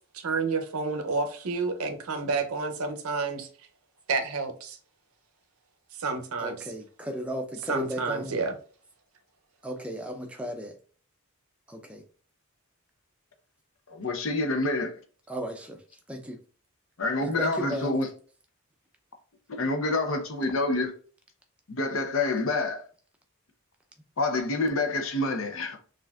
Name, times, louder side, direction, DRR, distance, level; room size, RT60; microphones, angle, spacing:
voice 1, 0.1-3.5 4.1-4.8 6.0-6.5 7.7-8.5, right 4 dB, 80° right, 0.6 m, -29 dB
voice 2, 6.4-8.4 9.6-10.8 11.7-12.0 15.3-15.8 16.1-16.4 17.2-17.9, equal, 5° right, 0.5 m, -35 dB
voice 3, 13.9-14.9 17.0-18.1 19.5-20.9 21.7-22.8 24.2-25.8, left 2 dB, 65° left, 0.7 m, -27 dB
5.8 x 2.5 x 2.3 m
head